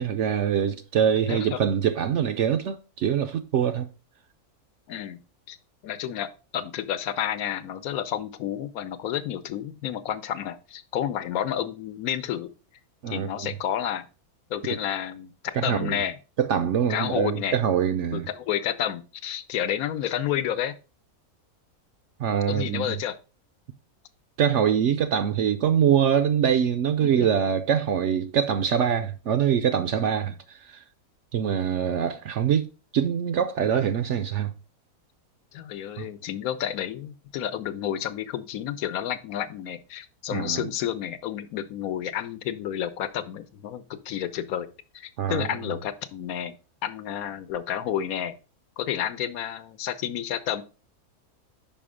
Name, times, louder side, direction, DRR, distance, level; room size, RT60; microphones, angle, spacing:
voice 1, 0.0-3.9 13.0-13.5 14.7-14.8 15.6-16.0 16.4-18.3 22.2-23.0 24.4-30.8 31.3-32.7 32.9-34.5 36.0-36.1 40.3-40.7 45.2-45.5, right 8 dB, 65° right, 0.7 m, -24 dB
voice 2, 1.3-1.6 4.9-5.2 5.5-5.6 5.8-6.3 6.5-12.5 13.1-14.1 14.5-16.2 16.9-17.6 18.1-20.7 22.5-23.2 27.0-27.3 35.5-44.7 44.9-46.5 46.8-48.3 48.8-50.6, left 10 dB, 75° left, 1.1 m, -30 dB
5.5 x 5.1 x 4.9 m
omnidirectional pair, 1.6 m